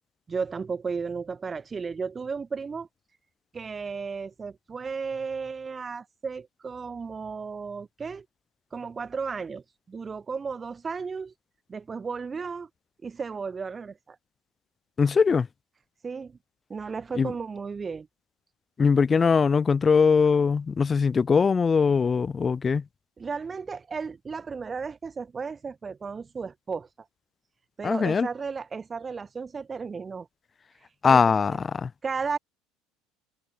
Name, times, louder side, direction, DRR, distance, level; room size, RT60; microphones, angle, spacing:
voice 1, 0.3-2.9 3.5-8.3 8.7-11.3 11.7-12.7 13.0-14.2 16.0-16.4 16.7-18.1 23.2-26.9 27.8-30.3 31.0-31.6 32.0-32.4, right 5 dB, 25° right, 1.1 m, -34 dB
voice 2, 15.0-15.5 17.2-17.3 18.8-22.8 27.8-28.3 31.0-31.9, left 5 dB, 30° left, 0.4 m, -21 dB
hypercardioid pair, 70°, 0 cm